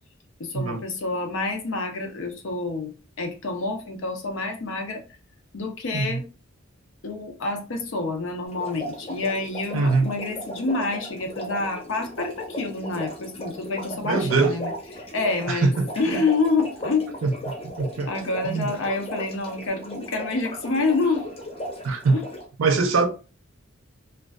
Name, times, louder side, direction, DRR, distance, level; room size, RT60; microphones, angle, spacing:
voice 1, 0.4-5.0 5.5-6.2 7.0-15.7 16.0-17.2 18.1-21.3 22.1-22.3, left 3 dB, 65° left, 0.5 m, -28 dB
sound 1, 8.4-22.4, equal, 30° left, 0.7 m, -37 dB
voice 2, 9.7-10.1 14.0-14.5 15.5-15.9 17.2-17.3 17.8-18.1 18.4-18.7 21.8-22.1 22.6-23.1, right 3 dB, 70° right, 0.5 m, -22 dB
2.4 x 2.3 x 2.2 m
head